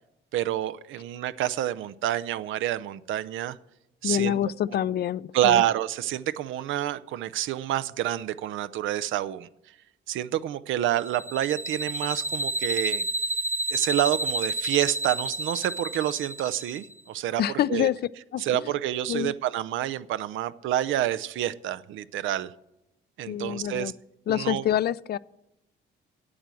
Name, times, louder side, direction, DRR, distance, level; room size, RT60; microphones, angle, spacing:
voice 1, 0.3-3.6 4.0-4.4 5.3-9.5 10.1-13.0 13.7-17.4 17.7-17.9 18.4-22.5 23.2-23.9 24.3-24.6, right 12 dB, 80° right, 16 dB, 0.5 m, -28 dB
voice 2, 4.0-5.6 17.4-18.0 18.3-18.4 19.1-19.3 23.3-23.9 24.3-25.2, left 11 dB, 55° left, 19 dB, 0.4 m, -26 dB
sound 1, 11.0-16.9, right 1 dB, 10° right, 0.6 m, -30 dB
8.7 x 8.2 x 7.5 m, 0.87 s
cardioid pair, 90°, 20 cm